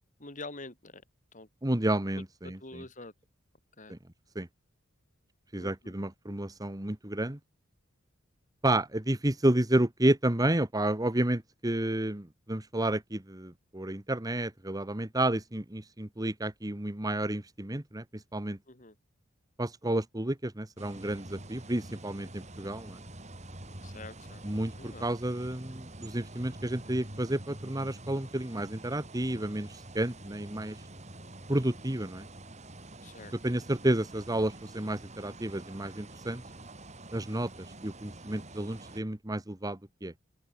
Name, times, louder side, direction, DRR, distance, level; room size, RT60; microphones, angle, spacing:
voice 1, 0.2-1.0 1.3-1.5 2.1-3.1 3.8-3.9 5.6-5.9 18.7-18.9 23.8-24.4 24.8-25.1 29.4-29.5 33.0-33.3, left 2 dB, 40° left, 4.8 m, -46 dB
voice 2, 1.6-2.8 3.9-4.0 4.3-4.5 5.5-7.4 8.6-18.6 19.6-23.0 24.4-30.8 31.5-32.3 33.3-36.4 37.1-40.1, right 1 dB, 20° right, 1.3 m, -31 dB
sound 1, 20.8-39.0, right 1 dB, 35° right, 4.6 m, -47 dB
open air
head